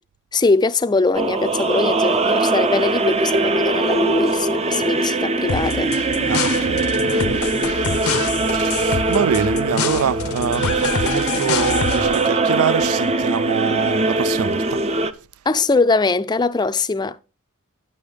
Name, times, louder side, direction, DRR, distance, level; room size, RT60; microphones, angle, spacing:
voice 1, 0.3-5.9 15.5-17.2, left 3 dB, 20° left, 0.4 m, -21 dB
sound 1, 1.1-15.1, right 2 dB, 30° right, 0.6 m, -21 dB
sound 2, 5.5-12.3, left 6 dB, 75° left, 0.7 m, -27 dB
voice 2, 6.3-7.4 7.7-8.2 8.5-15.0, right 7 dB, 75° right, 0.4 m, -25 dB
9.8 x 6.3 x 5.0 m
head